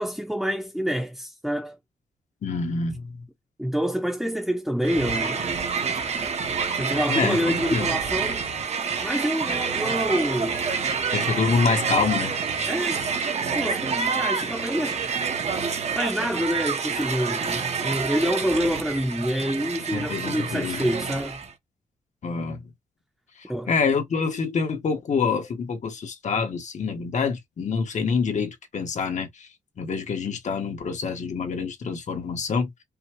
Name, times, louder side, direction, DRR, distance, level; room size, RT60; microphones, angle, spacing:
voice 1, 0.0-1.8 3.6-5.4 6.8-8.4 9.0-10.6 12.7-13.0 13.5-15.0 15.9-21.4 23.5-23.7, equal, ahead, 0.9 m, -27 dB
voice 2, 2.4-3.1 7.1-7.9 11.1-12.3 19.9-20.9 22.2-22.7 23.7-29.5 29.8-32.7, left 5 dB, 60° left, 1.6 m, -26 dB
Crowd, 4.8-21.5, right 5 dB, 50° right, 1.2 m, -28 dB
5.5 x 2.4 x 3.0 m
cardioid pair, 85°, 14 cm